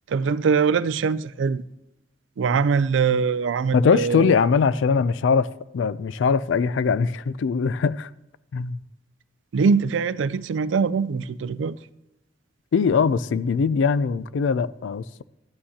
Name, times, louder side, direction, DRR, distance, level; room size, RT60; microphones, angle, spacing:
voice 1, 0.1-1.6 2.4-4.4 9.5-11.8, right 5 dB, 85° right, 0.4 m, -22 dB
voice 2, 3.7-8.1 8.5-8.8 12.7-15.2, left 5 dB, 85° left, 0.4 m, -21 dB
13.0 x 8.7 x 2.8 m
head